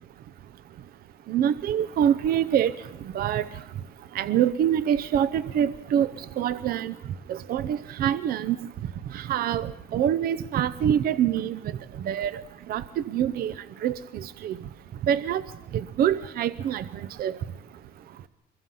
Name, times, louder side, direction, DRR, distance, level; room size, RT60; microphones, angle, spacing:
voice 1, 1.3-2.7 3.1-3.5 4.1-6.1 6.4-6.9 7.3-8.6 9.1-11.6 12.0-12.3 12.7-13.5 13.8-14.6 15.1-15.4 15.7-16.8 17.2-17.4, right 9 dB, 60° right, 14 dB, 0.8 m, -25 dB
25.5 x 22.0 x 5.6 m, 0.90 s
cardioid pair, 110°, 17 cm